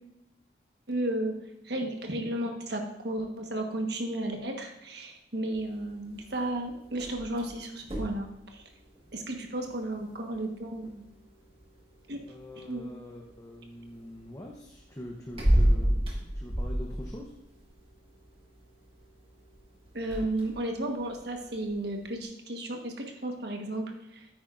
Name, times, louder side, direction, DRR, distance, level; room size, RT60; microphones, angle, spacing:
voice 1, 0.9-1.3 1.6-8.6 9.1-11.1 12.1-12.2 12.5-12.9 19.9-24.3, right 1 dB, 60° right, 3 dB, 1.4 m, -33 dB
sound 1, 5.5-22.2, equal, 30° right, 1.6 m, -34 dB
voice 2, 12.3-17.3, left 1 dB, 15° left, -1 dB, 0.9 m, -44 dB
9.3 x 8.9 x 2.6 m, 0.90 s
head